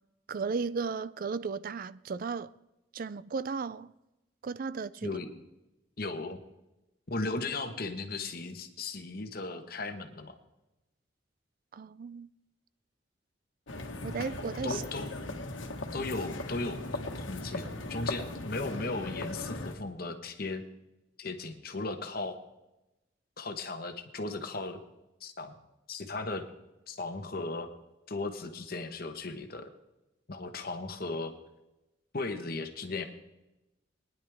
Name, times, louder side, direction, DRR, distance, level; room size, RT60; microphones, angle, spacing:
voice 1, 0.3-2.5 2.9-3.9 4.4-5.1 11.7-12.3 14.0-14.8, right 5 dB, 45° right, 0.4 m, -35 dB
voice 2, 5.0-5.4 6.0-6.4 7.1-10.3 14.6-15.1 15.9-16.8 17.1-20.6 21.2-22.4 23.4-24.8 25.2-25.5 25.9-26.4 26.9-27.7 28.1-29.7 30.3-31.3 32.1-33.0, left 3 dB, 50° left, 1.2 m, -36 dB
sound 1, 13.7-19.7, left 2 dB, 85° left, 1.4 m, -38 dB
22.0 x 10.5 x 3.5 m
head